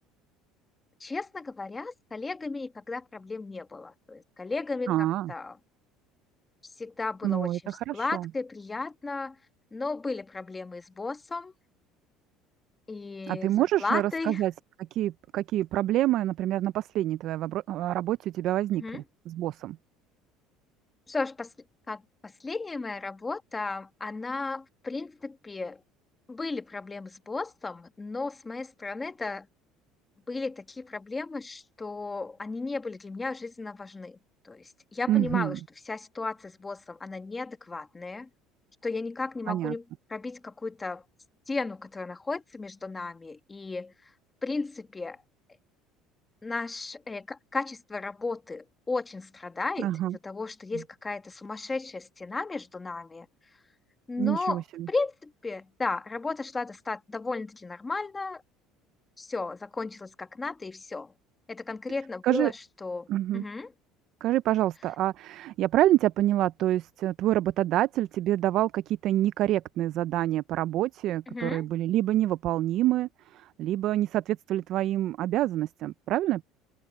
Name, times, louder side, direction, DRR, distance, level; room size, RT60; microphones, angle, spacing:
voice 1, 1.0-5.6 6.8-9.3 9.7-11.5 12.9-14.4 18.8-19.0 21.1-21.5 21.9-25.8 26.3-29.5 30.3-34.2 34.4-35.6 35.9-38.3 38.8-39.8 40.1-41.0 41.5-43.9 44.4-45.2 46.4-53.3 54.1-54.6 54.9-58.4 59.2-61.1 61.5-63.1 63.3-63.7 71.3-71.7, left 3 dB, 10° left, 1.3 m, -34 dB
voice 2, 4.9-5.3 7.2-8.3 13.3-14.5 14.9-19.8 35.1-35.6 39.5-39.7 49.8-50.2 54.2-54.9 62.2-62.5 63.1-63.4 64.2-76.4, right 14 dB, 45° right, 0.3 m, -27 dB
cardioid pair, 170°, 0 cm